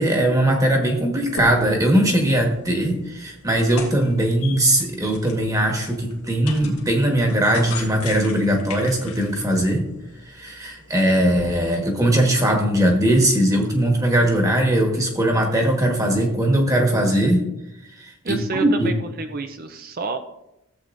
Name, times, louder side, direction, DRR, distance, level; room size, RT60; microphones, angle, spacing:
voice 1, 0.0-9.8 10.2-17.4 18.0-18.9, right 1 dB, 15° right, 1 dB, 1.4 m, -20 dB
sound 1, 1.1-11.5, left 4 dB, 90° left, 1.6 m, -39 dB
voice 2, 18.2-20.2, right 3 dB, 45° right, 7 dB, 0.5 m, -29 dB
14.5 x 7.9 x 2.6 m, 0.88 s
head